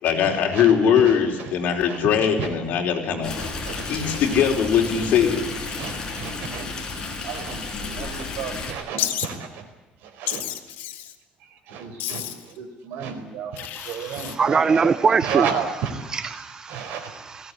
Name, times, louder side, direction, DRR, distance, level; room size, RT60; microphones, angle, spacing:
voice 1, 0.0-3.3 3.8-5.4, left 8 dB, 60° left, 2 dB, 4.5 m, -20 dB
Stream, 3.2-8.7, left 3 dB, 25° left, 4.9 m, -32 dB
voice 2, 3.4-3.7 4.0-4.2 5.8-6.6 7.2-9.6 10.2-10.4 11.7-12.2 12.6-14.9 15.2-15.9 16.7-17.1, right 7 dB, 85° right, 7 dB, 4.5 m, -32 dB
Wild animals, 9.0-9.3 10.3-11.1 12.0-12.5 13.6-14.4, left 12 dB, 80° left, 2.0 m, -30 dB
voice 3, 13.8-17.5, right 5 dB, 25° right, 15 dB, 0.6 m, -24 dB
20.5 x 17.0 x 9.8 m, 1.2 s
cardioid pair, 155°, 3 cm